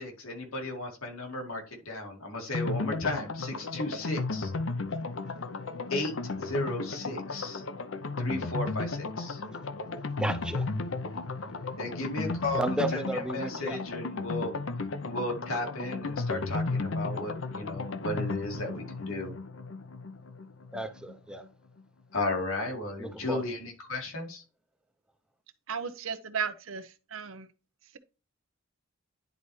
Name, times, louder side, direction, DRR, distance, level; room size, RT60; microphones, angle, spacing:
voice 1, 0.0-4.5 5.9-6.1 6.4-7.6 8.2-9.4 11.8-14.5 15.0-19.3 22.1-24.4, left 2 dB, 85° left, 2.3 m, -34 dB
sound 1, 2.5-21.1 21.4-21.5 21.8-21.9, left 3 dB, 65° left, 0.7 m, -34 dB
voice 2, 10.2-10.7 12.6-13.8 20.7-21.4 23.0-23.4, right 1 dB, 5° right, 0.7 m, -33 dB
voice 3, 25.7-27.5, right 6 dB, 75° right, 0.8 m, -35 dB
10.5 x 4.1 x 3.2 m
head